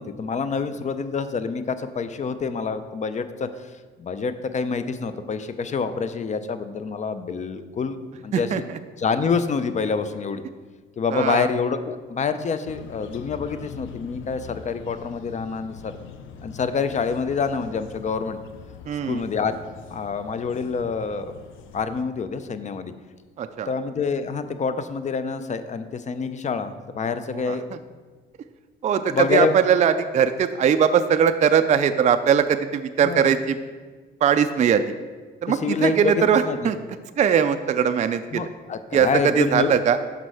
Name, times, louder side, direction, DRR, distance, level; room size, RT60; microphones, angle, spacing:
voice 1, 0.0-3.7 4.0-8.6 9.0-10.4 11.0-16.0 16.4-18.4 19.1-19.6 19.9-21.3 21.7-22.9 23.7-27.7 29.1-29.6 33.0-33.4 35.5-36.7 38.3-39.8, left 5 dB, 35° left, 11 dB, 0.5 m, -27 dB
voice 2, 11.1-11.5 18.9-19.2 23.4-23.7 27.5-27.6 28.8-33.6 34.2-34.9 35.4-36.8 37.2-38.5 38.9-39.1 39.4-40.0, right 7 dB, 35° right, 9 dB, 0.4 m, -20 dB
sound 1, 12.7-22.0, left 6 dB, 80° left, 0.5 m, -43 dB
6.0 x 5.4 x 4.8 m, 1.4 s
cardioid pair, 90°, 20 cm